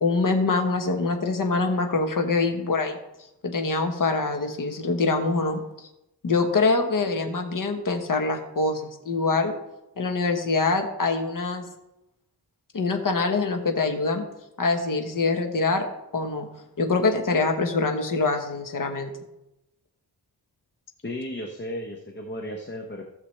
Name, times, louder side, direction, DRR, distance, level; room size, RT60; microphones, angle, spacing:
voice 1, 0.0-3.0 3.4-5.9 6.2-9.5 10.0-11.7 12.7-14.2 14.6-15.9 16.1-16.5 16.8-19.1, left 3 dB, 50° left, 4 dB, 1.1 m, -24 dB
voice 2, 21.0-23.0, left 1 dB, 25° left, 2 dB, 0.8 m, -34 dB
15.0 x 6.7 x 3.2 m, 0.91 s
wide cardioid pair, 150°, 40 cm